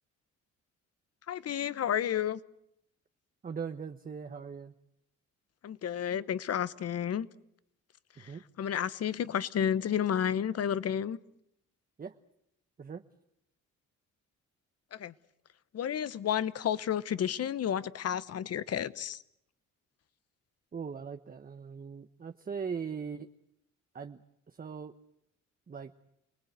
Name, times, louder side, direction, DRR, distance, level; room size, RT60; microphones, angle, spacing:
voice 1, 1.3-2.4 5.6-7.3 8.2-8.3 8.6-11.2 14.9-15.1 15.7-19.2, left 9 dB, 55° left, 17 dB, 1.0 m, -31 dB
voice 2, 3.4-4.7 8.2-8.4 12.0-12.1 12.8-13.0 20.7-23.3 23.9-24.2 24.5-24.9 25.7-25.9, right 6 dB, 30° right, 7 dB, 1.0 m, -40 dB
28.0 x 19.5 x 8.1 m, 0.79 s
cardioid pair, 90°, 30 cm